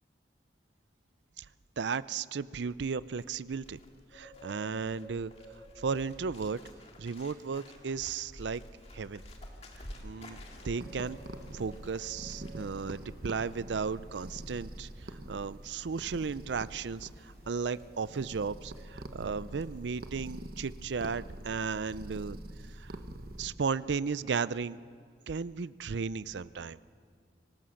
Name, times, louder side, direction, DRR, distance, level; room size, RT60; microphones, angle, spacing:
voice 1, 1.8-3.8 4.1-5.3 5.8-6.6 7.0-8.6 8.9-9.2 9.8-10.4 10.6-11.2 11.5-22.4 22.7-23.0 23.4-24.8 25.3-26.8, right 5 dB, 85° right, 18 dB, 0.5 m, -35 dB
Bird, 2.8-20.7 20.9-21.2, equal, 35° left, 2.1 m, -52 dB
sound 1, 8.0-20.1, left 1 dB, 85° left, 4.1 m, -62 dB
sound 2, 10.8-23.5, right 1 dB, 55° right, 1.1 m, -45 dB
24.5 x 18.5 x 6.4 m, 2.1 s
head